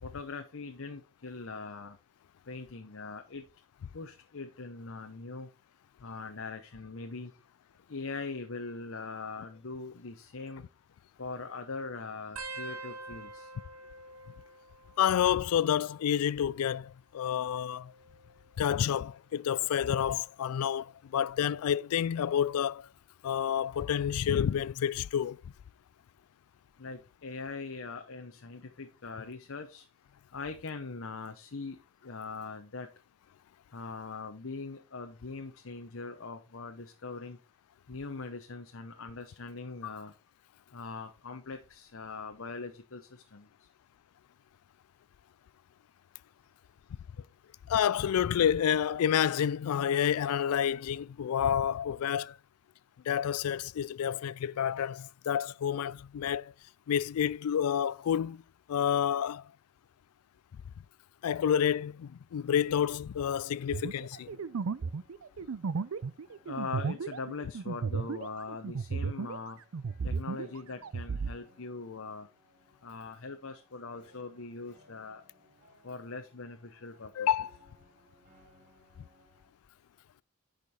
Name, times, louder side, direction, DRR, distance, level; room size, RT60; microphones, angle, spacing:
voice 1, 0.0-2.0 2.5-3.4 3.9-5.5 6.0-7.3 7.9-10.6 11.2-13.7 26.8-29.9 30.3-32.9 33.7-37.4 37.9-40.1 40.7-43.7 47.2-47.3 66.4-69.6 70.0-72.3 72.8-75.2 75.8-77.3, left 4 dB, 60° left, 0.9 m, -41 dB
sound 1, 12.4-15.5 15.8-16.4 17.4-18.9 19.5-19.8 21.1-21.4 22.9-23.0, right 3 dB, 90° right, 1.6 m, -47 dB
voice 2, 15.0-17.9 18.6-22.9 23.2-25.5 39.8-39.9 47.7-52.4 53.1-56.5 56.9-58.4 58.7-59.5 61.2-64.3 77.2-77.5, left 9 dB, 90° left, 0.3 m, -29 dB
sound 2, 63.7-69.5 69.7-71.3, right 5 dB, 70° right, 0.5 m, -34 dB
sound 3, 64.1-79.5, right 1 dB, 40° right, 3.8 m, -64 dB
10.5 x 5.3 x 4.3 m
head